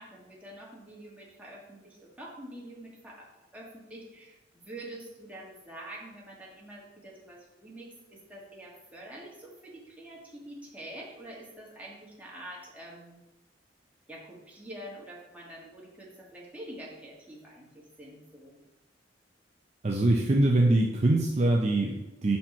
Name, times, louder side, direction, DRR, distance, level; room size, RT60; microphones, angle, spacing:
voice 1, 0.0-3.3 3.5-13.2 14.1-18.6, right 1 dB, 10° right, -4 dB, 1.6 m, -46 dB
voice 2, 19.8-22.4, right 2 dB, 40° right, 0 dB, 0.6 m, -23 dB
5.9 x 4.3 x 4.3 m, 1.0 s
head